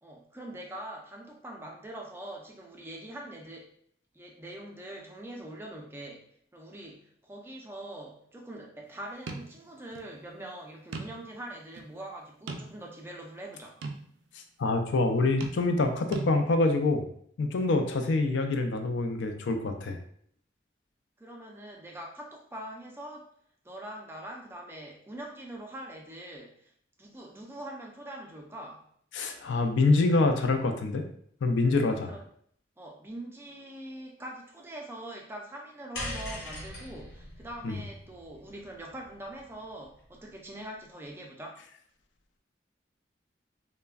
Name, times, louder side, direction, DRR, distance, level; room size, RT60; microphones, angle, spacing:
voice 1, 0.0-3.7 4.1-6.2 6.5-13.7 17.8-18.0 21.2-23.3 23.6-26.7 27.0-28.9 32.0-32.3 32.8-41.6, right 1 dB, 15° right, 0 dB, 0.3 m, -43 dB
sound 1, 9.3-9.5 9.9-10.0 10.9-11.3 11.8-11.9 12.5-13.0 13.8-14.1 15.4-15.9 16.1-16.3, right 3 dB, 90° right, 0.3 m, -37 dB
voice 2, 14.6-17.0 17.4-20.0 29.1-31.0 31.4-32.1 37.6-37.8, left 3 dB, 90° left, 5 dB, 0.4 m, -26 dB
sound 2, 35.9-40.3, left 1 dB, 65° left, 0.7 m, -42 dB
3.2 x 2.1 x 2.3 m, 0.65 s
head